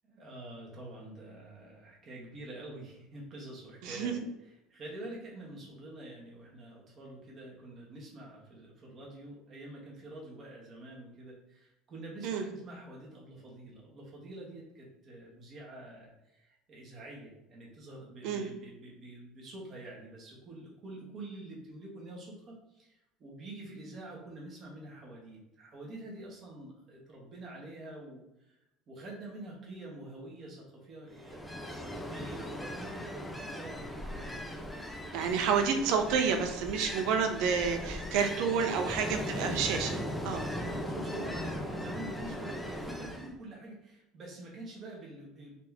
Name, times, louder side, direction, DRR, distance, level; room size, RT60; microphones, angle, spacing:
voice 1, 0.1-4.1 4.7-28.2 28.5-28.6 28.9-31.5 31.8-34.6 38.7-38.9 40.5-45.6, right 2 dB, 35° right, -3 dB, 1.4 m, -47 dB
voice 2, 3.8-4.1 12.2-12.4 18.2-18.5 35.1-40.0 40.2-40.5, right 6 dB, 65° right, 5 dB, 0.7 m, -29 dB
Ocean, 31.1-43.3, equal, 5° left, 0.5 m, -38 dB
4.2 x 2.9 x 3.5 m, 0.91 s
cardioid pair, 140°, 0 cm